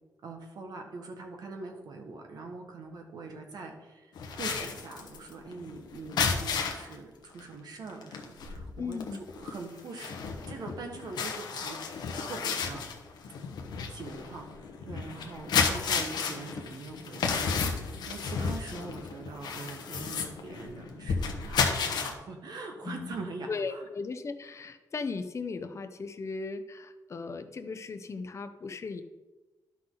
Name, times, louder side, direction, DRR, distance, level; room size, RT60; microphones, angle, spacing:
voice 1, 0.2-10.1 10.5-11.8 12.2-12.9 13.9-23.9, right 3 dB, 70° right, 3 dB, 1.5 m, -43 dB
sound 1, 4.1-6.9 7.4-7.5 7.9-22.1, left 5 dB, 90° left, 1.1 m, -32 dB
voice 2, 8.8-9.2 22.8-23.1 23.5-29.0, left 4 dB, 45° left, 8 dB, 0.7 m, -37 dB
11.5 x 5.8 x 4.0 m, 1.1 s
cardioid pair, 100°, 7 cm